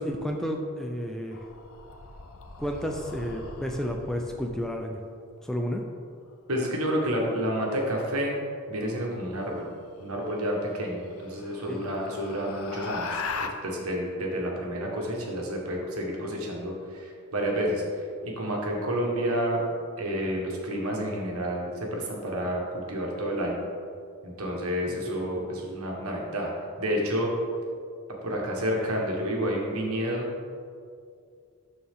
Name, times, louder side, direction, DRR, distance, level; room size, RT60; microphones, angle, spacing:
voice 1, 0.0-1.4 2.6-5.0 5.4-5.8 11.7-11.8 24.9-25.2, equal, ahead, 1 dB, 0.4 m, -31 dB
sound 1, 1.3-4.8 7.1-7.6 9.7-9.8 10.3-10.4 10.9-13.5, left 4 dB, 70° left, 0.6 m, -39 dB
voice 2, 6.5-8.3 8.7-9.7 10.0-17.8 18.2-19.6 20.0-23.6 24.2-26.5 26.8-27.3 28.2-30.3, equal, 75° right, -1 dB, 1.5 m, -30 dB
12.5 x 4.3 x 3.7 m, 2.3 s
head